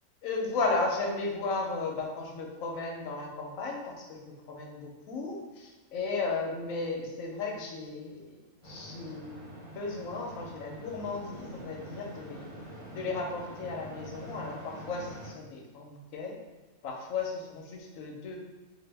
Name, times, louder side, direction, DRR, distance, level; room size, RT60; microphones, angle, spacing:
voice 1, 0.2-8.2 8.6-12.5 12.9-16.3 16.8-18.4, left 3 dB, 75° left, 0 dB, 1.0 m, -35 dB
sound 1, 8.6-15.3, equal, 75° right, 1.3 m, -45 dB
2.7 x 2.4 x 3.2 m, 1.2 s
omnidirectional pair, 1.5 m